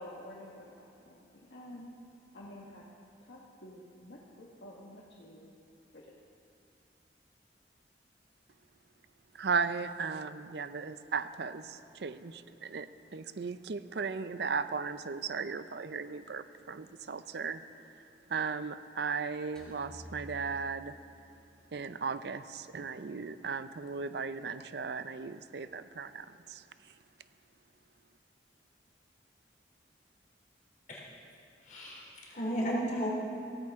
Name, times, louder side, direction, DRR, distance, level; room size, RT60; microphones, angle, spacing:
voice 1, 0.0-1.9 2.3-2.8 3.2-5.6 5.9-6.1, left 1 dB, 80° left, -4 dB, 1.5 m, -49 dB
voice 2, 9.3-17.6 17.9-18.0 18.3-20.9 21.7-26.9, right 5 dB, 70° right, 12 dB, 0.5 m, -36 dB
sound 1, 19.6-21.8, left 1 dB, 5° left, 2.8 m, -51 dB
voice 3, 31.6-33.1, equal, 45° left, -4 dB, 3.2 m, -34 dB
17.0 x 15.5 x 3.6 m, 2.6 s
head